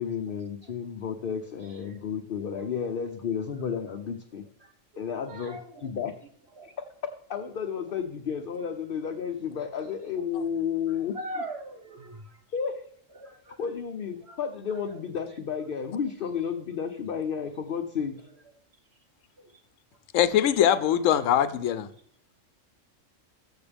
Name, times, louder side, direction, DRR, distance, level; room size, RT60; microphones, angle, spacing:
voice 1, 0.0-4.4 5.0-6.2 6.6-11.2 12.5-12.8 13.6-18.2, left 7 dB, 50° left, 5 dB, 0.8 m, -32 dB
voice 2, 4.6-5.9 6.6-6.7 11.1-12.4 13.2-13.6 14.3-14.4 19.4-19.5, right 1 dB, 55° right, 5 dB, 1.4 m, -41 dB
voice 3, 20.1-21.9, left 10 dB, 80° left, 14 dB, 1.0 m, -22 dB
14.0 x 6.5 x 3.4 m, 0.65 s
omnidirectional pair, 1.3 m